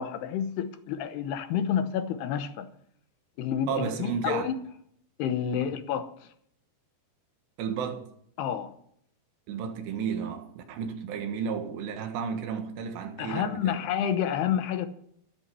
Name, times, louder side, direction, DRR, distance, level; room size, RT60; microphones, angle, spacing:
voice 1, 0.0-2.7 3.4-4.6 5.2-6.3 8.4-8.7 13.2-14.9, left 8 dB, 75° left, 2.9 m, -29 dB
voice 2, 3.7-4.5 5.6-5.7 7.6-8.1 9.5-13.8, right 7 dB, 80° right, 3.7 m, -33 dB
13.5 x 11.5 x 6.2 m
omnidirectional pair, 4.9 m